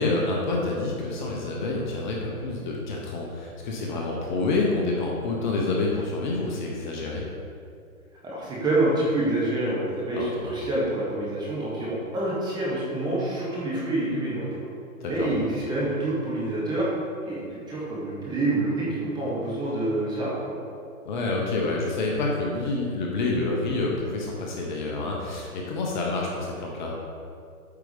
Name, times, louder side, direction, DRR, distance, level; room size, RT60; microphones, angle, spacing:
voice 1, 0.0-7.2 10.1-10.3 15.0-15.3 21.0-27.0, left 3 dB, 30° left, -1 dB, 1.0 m, -28 dB
voice 2, 8.2-14.5 15.1-16.9 17.2-20.6, right 2 dB, 10° right, -7 dB, 1.3 m, -27 dB
8.4 x 4.7 x 5.1 m, 2.4 s
hypercardioid pair, 145°, 44 cm